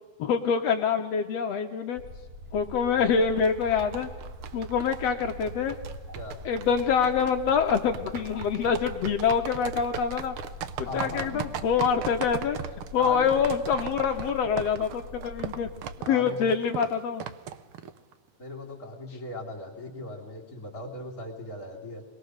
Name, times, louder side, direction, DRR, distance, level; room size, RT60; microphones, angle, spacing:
voice 1, 0.2-2.0 2.5-4.1 4.5-5.8 6.5-10.4 10.9-12.6 12.9-15.7 16.1-17.2, left 6 dB, 65° left, 6 dB, 1.9 m, -25 dB
sound 1, 2.0-16.0, left 1 dB, 15° right, 2.8 m, -43 dB
sound 2, 3.2-18.1, right 9 dB, 80° right, 1.2 m, -39 dB
voice 2, 10.8-11.4 13.0-13.3 16.0-16.5 18.4-22.0, left 2 dB, 30° left, -2 dB, 3.5 m, -38 dB
27.0 x 22.0 x 6.5 m, 1.4 s
omnidirectional pair, 3.6 m